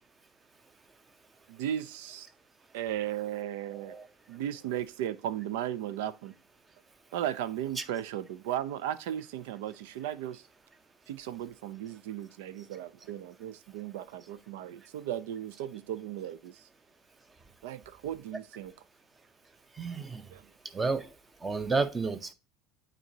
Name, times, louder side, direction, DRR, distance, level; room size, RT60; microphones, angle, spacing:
voice 1, 1.5-2.3 2.7-4.0 4.3-6.3 7.1-10.4 11.1-16.6 17.6-18.7 20.3-20.5, right 11 dB, 85° right, 0.5 m, -36 dB
voice 2, 3.7-4.0 19.8-20.2 20.7-21.1 21.4-22.3, right 4 dB, 20° right, 0.6 m, -31 dB
8.9 x 4.0 x 2.7 m
supercardioid pair, 140°, 0 cm